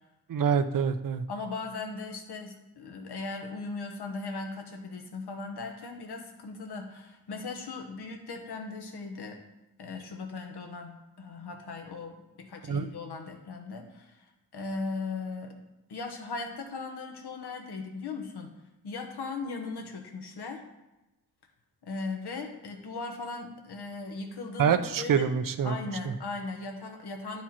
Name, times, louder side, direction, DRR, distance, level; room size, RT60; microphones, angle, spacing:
voice 1, 0.3-1.3 12.7-12.9 24.6-25.7 26.1-26.2, right 7 dB, 55° right, 10 dB, 0.6 m, -26 dB
voice 2, 1.3-9.4 9.8-14.2 14.5-15.5 15.9-18.5 18.8-20.6 21.8-25.3 25.6-27.4, left 3 dB, 85° left, 2 dB, 1.3 m, -38 dB
10.5 x 4.6 x 4.3 m, 1.0 s
wide cardioid pair, 120°, 39 cm